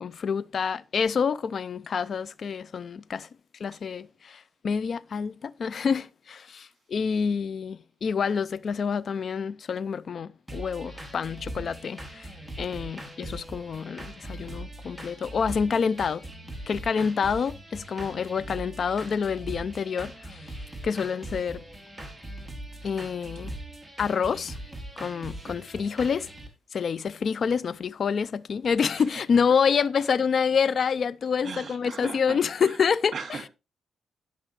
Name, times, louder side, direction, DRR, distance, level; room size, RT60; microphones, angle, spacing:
voice 1, 0.0-3.3 3.6-12.3 12.6-16.2 16.7-21.6 22.8-23.5 24.0-24.6 25.0-26.3 26.7-33.4, left 6 dB, 55° left, 0.4 m, -27 dB
sound 1, 10.5-26.5, right 1 dB, ahead, 2.8 m, -41 dB
voice 2, 31.4-32.8 33.1-33.5, right 5 dB, 50° right, 2.2 m, -39 dB
16.0 x 6.1 x 3.2 m
cardioid pair, 105°, 0 cm